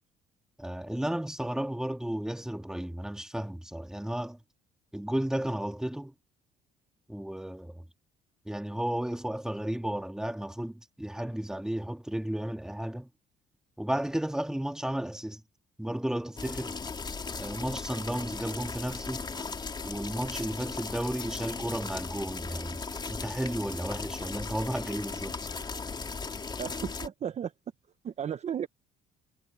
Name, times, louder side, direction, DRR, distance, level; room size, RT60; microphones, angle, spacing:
voice 1, 0.6-4.4 4.9-6.1 7.1-7.9 8.5-13.1 13.8-15.4 15.8-16.8 17.4-19.3 19.8-22.8 23.1-25.4, right 1 dB, 5° right, 1.9 m, -33 dB
sound 1, 16.4-27.1, left 4 dB, 25° left, 3.4 m, -37 dB
voice 2, 26.6-27.5 28.0-28.7, right 8 dB, 40° right, 0.9 m, -34 dB
cardioid pair, 110°, 17 cm